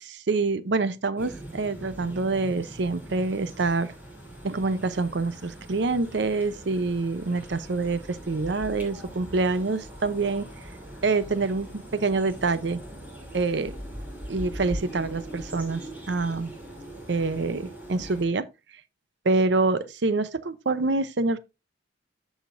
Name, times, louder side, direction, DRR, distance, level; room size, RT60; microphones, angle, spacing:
voice 1, 0.0-3.9 4.4-10.5 11.0-12.8 13.3-13.7 14.3-16.5 17.1-18.5 19.2-21.4, right 3 dB, 60° right, 0.6 m, -26 dB
sound 1, 1.2-18.2, right 1 dB, 10° right, 2.8 m, -41 dB
13.5 x 5.1 x 2.5 m
head